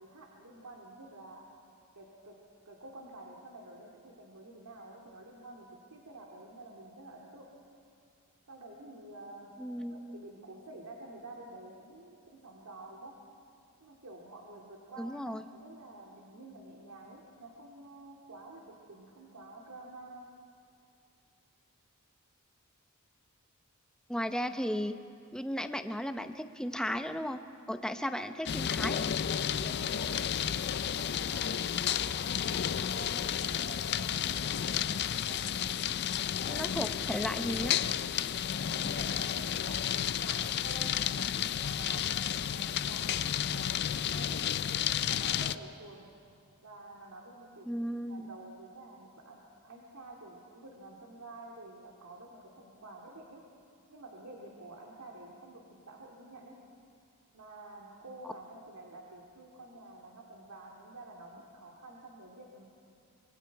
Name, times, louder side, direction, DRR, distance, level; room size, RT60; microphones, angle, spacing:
voice 1, 0.0-1.5 2.0-2.4 2.7-7.5 8.5-9.6 9.9-13.1 13.8-15.2 15.6-20.3 29.4-35.6 37.1-37.3 38.7-46.1 46.6-47.7 48.1-53.4 53.9-56.6 57.3-62.6, right 2 dB, 90° right, -1 dB, 2.3 m, -49 dB
voice 2, 9.6-10.2 15.0-15.4 24.1-25.0 25.3-27.4 27.7-29.1 36.5-37.8 47.7-48.4, equal, 5° left, 8 dB, 0.7 m, -35 dB
sound 1, 28.4-45.6, left 9 dB, 50° left, 0.4 m, -32 dB
25.5 x 23.0 x 4.7 m, 2.5 s
head